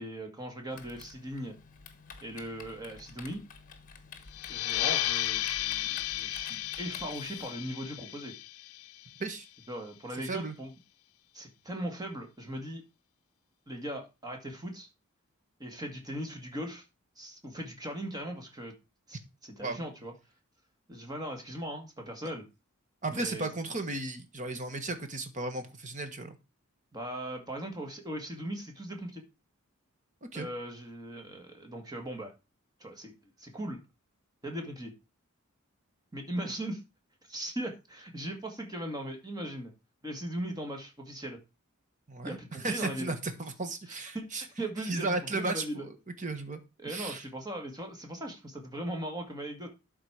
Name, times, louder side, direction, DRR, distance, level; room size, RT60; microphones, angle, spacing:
voice 1, 0.0-1.6 2.2-3.5 4.5-8.4 9.7-10.7 11.3-12.8 13.7-14.9 15.6-16.8 17.2-18.7 19.1-20.1 20.9-22.5 23.1-23.5 26.9-29.2 30.3-32.3 32.8-33.1 33.4-33.8 34.4-34.9 36.1-36.8 37.3-39.7 40.0-41.4 42.2-43.1 43.9-45.9 46.8-49.7, right 1 dB, 15° right, 3 dB, 1.8 m, -39 dB
Typing, 0.7-7.5, left 5 dB, 35° left, 1.2 m, -50 dB
sound 1, 4.3-9.6, left 14 dB, 75° left, 0.5 m, -34 dB
voice 2, 10.2-10.5 19.6-19.9 23.0-26.4 30.3-30.5 42.1-44.4 44.9-45.9 46.2-46.6 46.8-47.2, right 2 dB, 35° right, 8 dB, 1.3 m, -35 dB
12.0 x 4.3 x 4.8 m, 0.27 s
head